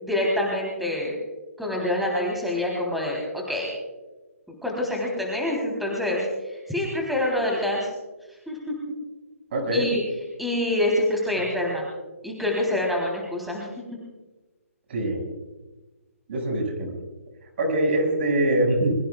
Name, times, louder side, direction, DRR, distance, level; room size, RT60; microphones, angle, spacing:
voice 1, 0.0-1.1 1.6-3.7 4.5-7.9 8.5-8.7 9.7-10.0 10.4-11.9 12.2-13.7, left 1 dB, ahead, -2 dB, 3.5 m, -26 dB
voice 2, 9.5-9.9 14.9-15.2 16.3-16.9 17.6-19.0, right 1 dB, 50° right, 2 dB, 6.1 m, -23 dB
24.0 x 22.5 x 2.4 m, 1.1 s
figure-of-eight pair, 140°, 8 cm